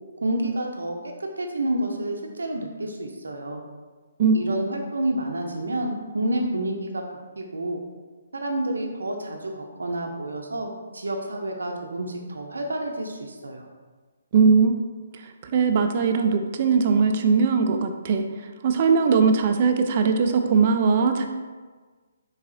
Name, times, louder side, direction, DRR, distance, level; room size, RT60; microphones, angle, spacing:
voice 1, 0.2-0.9 1.2-3.6 4.3-7.0 7.4-7.8 8.3-13.6, right 1 dB, 90° right, 2 dB, 0.6 m, -29 dB
voice 2, 14.3-14.7 15.5-18.3 18.6-21.3, right 5 dB, 40° right, 5 dB, 0.3 m, -20 dB
3.9 x 2.8 x 2.6 m, 1.4 s
hypercardioid pair, 155°, 0 cm